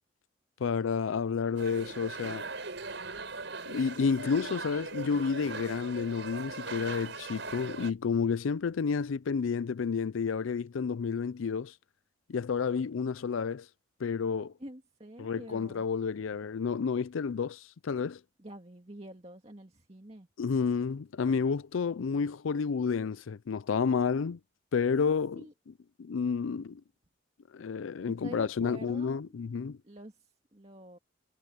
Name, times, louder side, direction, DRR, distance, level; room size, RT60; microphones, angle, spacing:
voice 1, 0.6-2.4 3.7-11.7 12.3-13.7 14.0-14.5 15.2-18.2 20.4-24.4 24.7-25.4 26.0-26.8 27.5-29.8, left 5 dB, 90° left, 0.4 m, -30 dB
sound 1, 1.6-7.9, right 4 dB, 70° right, 5.0 m, -40 dB
voice 2, 14.6-15.9 18.4-20.3 25.4-25.5 28.2-29.4 29.8-31.0, right 1 dB, 30° right, 2.1 m, -48 dB
head